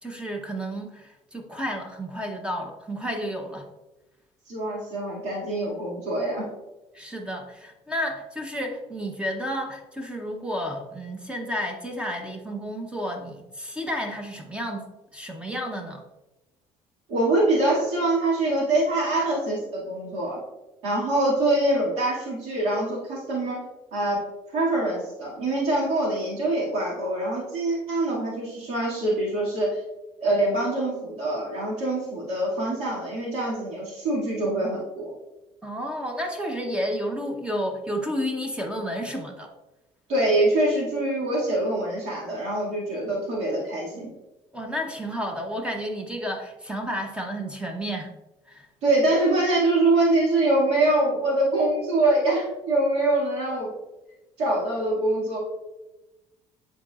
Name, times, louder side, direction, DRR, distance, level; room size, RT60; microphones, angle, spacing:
voice 1, 0.0-3.7 6.9-16.0 35.6-39.5 44.5-48.1 48.5-48.7, equal, 10° right, 2 dB, 0.8 m, -31 dB
voice 2, 4.5-6.5 17.1-20.4 20.8-23.6 23.9-24.2 24.5-29.8 30.2-35.1 40.1-44.1 48.8-53.7 54.4-55.4, right 2 dB, 75° right, -5 dB, 2.2 m, -24 dB
10.5 x 4.0 x 2.4 m, 1.0 s
cardioid pair, 110°, 11 cm